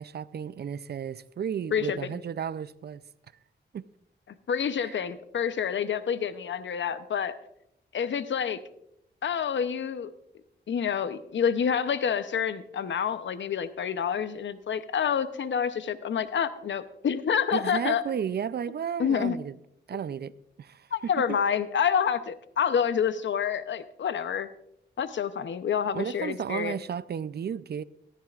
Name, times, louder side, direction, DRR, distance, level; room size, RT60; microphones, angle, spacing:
voice 1, 0.0-3.0 3.7-3.8 4.8-5.0 17.5-19.5 19.9-20.3 20.6-21.1 25.9-27.8, right 8 dB, 60° right, 0.5 m, -33 dB
voice 2, 1.7-2.1 4.5-7.4 7.9-8.6 9.2-10.1 10.7-18.0 19.0-19.4 19.9-20.0 20.9-24.5 25.0-26.8, left 7 dB, 80° left, 0.7 m, -28 dB
17.5 x 13.5 x 2.4 m
cardioid pair, 70°, 19 cm